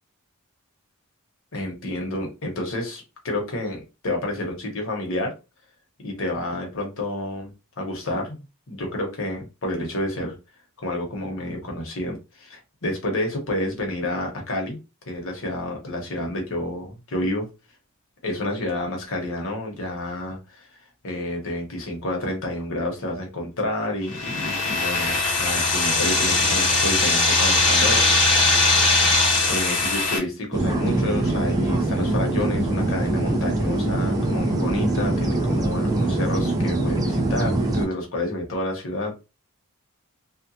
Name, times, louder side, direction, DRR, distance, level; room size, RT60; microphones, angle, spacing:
voice 1, 1.5-5.3 6.0-10.4 10.8-14.8 15.1-17.5 18.2-20.7 21.0-28.1 29.4-39.2, left 1 dB, 60° left, 0.9 m, -29 dB
sound 1, 24.1-30.2, left 3 dB, 90° left, 1.0 m, -20 dB
sound 2, 30.5-37.9, right 1 dB, 15° right, 0.5 m, -23 dB
2.8 x 2.1 x 2.6 m
head